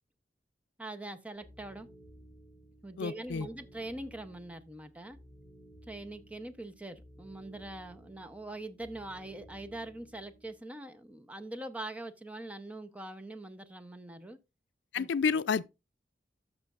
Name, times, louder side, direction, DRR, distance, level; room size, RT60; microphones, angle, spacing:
voice 1, 0.8-1.9 2.8-5.2 5.9-14.4 15.0-15.1, right 2 dB, 10° right, 0.6 m, -43 dB
sound 1, 1.3-10.6, equal, 30° left, 2.3 m, -56 dB
voice 2, 3.0-3.5 14.9-15.6, left 5 dB, 85° left, 0.4 m, -29 dB
13.0 x 6.2 x 2.4 m
head